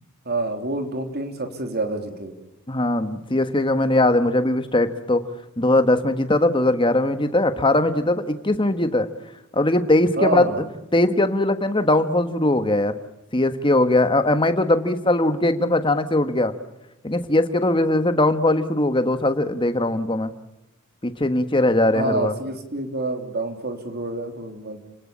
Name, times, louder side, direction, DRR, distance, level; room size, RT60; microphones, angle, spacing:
voice 1, 0.2-2.3 10.2-10.6 21.9-24.8, right 2 dB, 50° right, 6 dB, 3.4 m, -27 dB
voice 2, 2.7-5.2 5.6-9.1 9.5-10.5 10.9-12.9 13.3-16.5 17.0-20.3 21.0-22.4, left 1 dB, 25° left, 9 dB, 1.5 m, -20 dB
29.5 x 19.0 x 8.8 m, 0.95 s
head